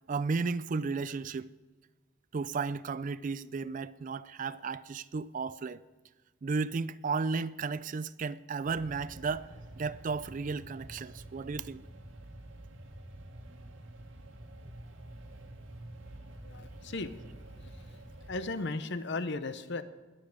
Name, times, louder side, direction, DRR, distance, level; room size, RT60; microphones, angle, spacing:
voice 1, 0.1-1.5 2.3-5.8 6.4-9.5 9.8-11.8, right 4 dB, 40° right, 0.4 m, -34 dB
sound 1, 8.6-18.3, right 1 dB, 70° right, 1.7 m, -48 dB
voice 2, 16.4-17.2 17.6-17.7 18.3-19.8, left 3 dB, 60° left, 0.8 m, -36 dB
21.0 x 8.5 x 5.0 m
head